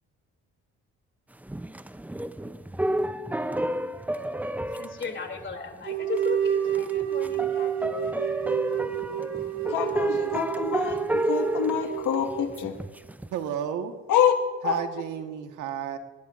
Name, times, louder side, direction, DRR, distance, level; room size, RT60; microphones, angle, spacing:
sound 1, 1.4-5.8 6.2-6.3 6.7-13.3, right 1 dB, 5° right, 0.5 m, -31 dB
voice 1, 4.8-8.1, left 4 dB, 40° left, 4 dB, 2.8 m, -36 dB
sound 2, 5.8-12.6, right 10 dB, 65° right, 2.3 m, -30 dB
voice 2, 9.7-12.7 14.1-14.3 14.6-14.8, left 9 dB, 85° left, 5 dB, 1.7 m, -26 dB
voice 3, 13.3-13.9 14.6-16.0, right 9 dB, 90° right, 6 dB, 1.4 m, -32 dB
19.5 x 18.5 x 2.5 m, 1.4 s
cardioid pair, 90°, 30 cm